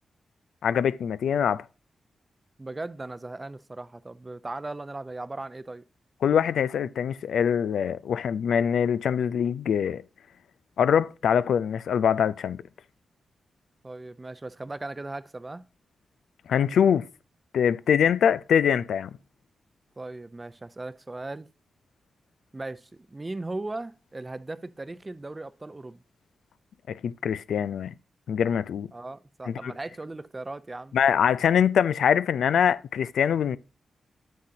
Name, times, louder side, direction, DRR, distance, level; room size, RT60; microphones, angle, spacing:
voice 1, 0.6-1.6 6.2-10.0 10.8-12.6 16.5-17.1 17.5-19.1 26.9-27.9 28.3-28.9 29.5-29.7 30.9-33.6, left 8 dB, 85° left, 0.3 m, -23 dB
voice 2, 2.6-5.8 13.8-15.6 20.0-21.5 22.5-26.0 28.9-30.9, right 2 dB, 30° right, 0.6 m, -37 dB
7.6 x 7.3 x 2.7 m
cardioid pair, 60°, 0 cm